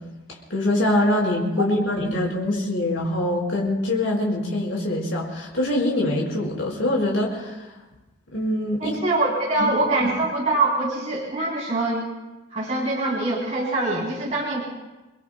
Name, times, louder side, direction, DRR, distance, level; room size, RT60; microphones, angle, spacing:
voice 1, 0.5-7.6 8.3-9.0 9.6-9.7 10.0-10.1, left 1 dB, 65° left, -3 dB, 5.1 m, -24 dB
voice 2, 8.8-12.0 12.5-14.6, right 2 dB, 35° right, -7 dB, 3.8 m, -24 dB
29.5 x 21.5 x 2.3 m, 1.1 s
head